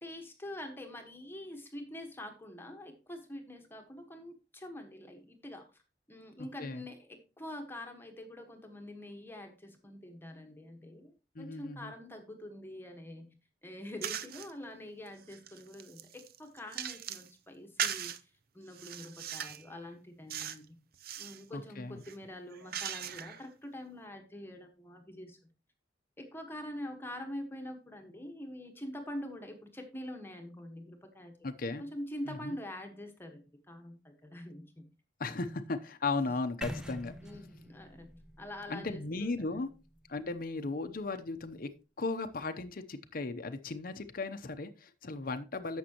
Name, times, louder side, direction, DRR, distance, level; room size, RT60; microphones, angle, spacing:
voice 1, 0.0-5.8 6.1-11.1 11.4-13.3 13.6-18.1 18.5-20.8 21.2-25.4 26.2-31.3 31.8-34.9 35.4-35.5 37.2-39.3, left 1 dB, 15° left, 4 dB, 1.3 m, -45 dB
voice 2, 11.4-11.9 21.5-22.0 31.4-31.8 32.3-32.6 35.2-37.1 38.7-39.7 40.1-41.7 42.0-45.8, left 3 dB, 50° left, 7 dB, 0.8 m, -36 dB
sound 1, 14.0-14.5 15.1-17.3 17.8-18.2 18.7-19.7 20.3-20.6 20.9-21.4 22.0-23.4, right 9 dB, 55° right, 0.6 m, -39 dB
sound 2, 36.6-40.6, equal, 5° right, 0.9 m, -46 dB
11.5 x 7.4 x 2.9 m, 0.31 s
head